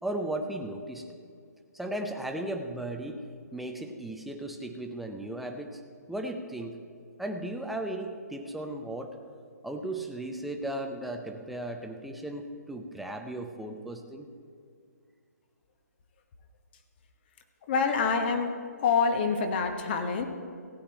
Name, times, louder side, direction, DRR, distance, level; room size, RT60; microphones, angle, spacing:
voice 1, 0.0-1.1 1.7-3.2 3.5-5.8 6.1-6.8 7.2-9.2 9.6-14.3, right 1 dB, ahead, 4 dB, 0.6 m, -36 dB
voice 2, 17.7-18.5 18.8-20.3, left 5 dB, 35° left, 6 dB, 1.2 m, -26 dB
16.5 x 8.5 x 4.4 m, 2.3 s
figure-of-eight pair, 140°, 9 cm